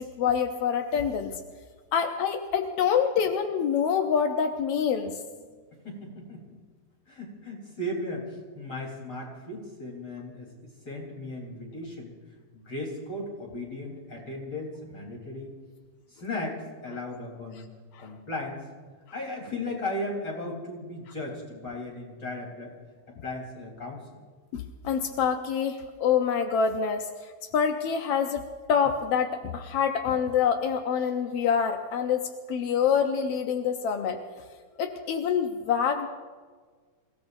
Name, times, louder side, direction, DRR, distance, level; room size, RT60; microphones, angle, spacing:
voice 1, 0.0-1.3 1.9-5.1 17.9-18.1 24.5-27.1 27.5-28.4 28.7-34.2 34.8-36.1, left 7 dB, 70° left, 4 dB, 1.4 m, -26 dB
voice 2, 5.8-6.6 7.1-12.2 12.5-15.5 16.1-17.6 18.0-18.6 19.1-22.7 23.2-24.1, left 1 dB, 30° left, -1 dB, 4.4 m, -36 dB
28.5 x 17.0 x 2.7 m, 1.5 s
omnidirectional pair, 3.6 m